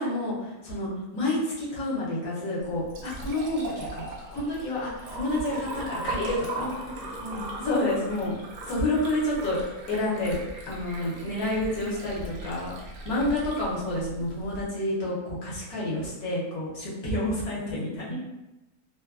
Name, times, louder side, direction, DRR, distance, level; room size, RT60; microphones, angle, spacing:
voice 1, 0.0-4.0 4.3-6.7 7.6-8.3 8.6-9.6 9.9-10.4 10.7-12.7 13.0-18.2, left 1 dB, 70° left, -6 dB, 1.3 m, -29 dB
Liquid, 2.6-14.6, right 2 dB, 65° right, 0.7 m, -39 dB
voice 2, 5.5-6.0 6.6-7.5 18.1-18.2, left 1 dB, 50° left, -10 dB, 0.7 m, -39 dB
3.0 x 2.2 x 2.3 m, 0.99 s
omnidirectional pair, 1.6 m